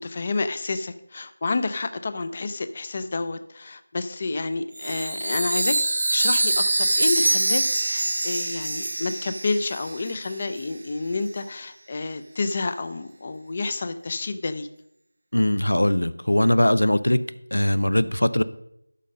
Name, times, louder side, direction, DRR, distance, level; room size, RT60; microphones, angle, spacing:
voice 1, 0.0-5.8 6.1-14.7, left 3 dB, 30° left, 11 dB, 0.5 m, -29 dB
Chime, 4.8-10.3, right 2 dB, 55° right, 0.4 m, -24 dB
voice 2, 15.3-18.4, left 1 dB, 85° left, 16 dB, 0.6 m, -21 dB
12.5 x 5.3 x 5.2 m, 0.77 s
figure-of-eight pair, 170°, 0 cm